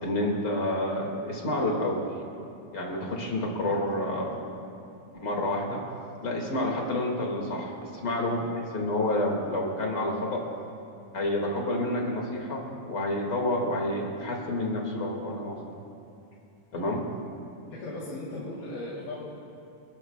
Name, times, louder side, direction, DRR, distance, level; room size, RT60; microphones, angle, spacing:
voice 1, 0.0-2.0 2.7-4.4 5.2-5.8 6.2-7.7 8.0-10.4 11.1-15.5 16.7-17.0, left 1 dB, 35° left, -1 dB, 2.2 m, -29 dB
voice 2, 17.8-19.2, left 1 dB, 85° left, -5 dB, 3.9 m, -36 dB
29.0 x 13.5 x 2.3 m, 2.6 s
omnidirectional pair, 4.1 m